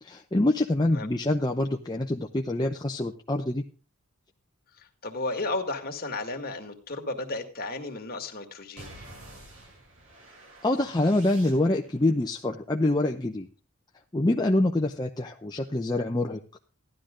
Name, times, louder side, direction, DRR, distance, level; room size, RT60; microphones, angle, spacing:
voice 1, 0.0-3.6 10.6-13.5 14.1-16.4, left 1 dB, 20° left, 2 dB, 0.7 m, -25 dB
voice 2, 4.8-8.9, left 2 dB, 45° left, 4 dB, 2.1 m, -33 dB
sound 1, 8.8-12.0, right 1 dB, 65° right, 7.1 m, -48 dB
15.0 x 11.5 x 3.8 m, 0.34 s
head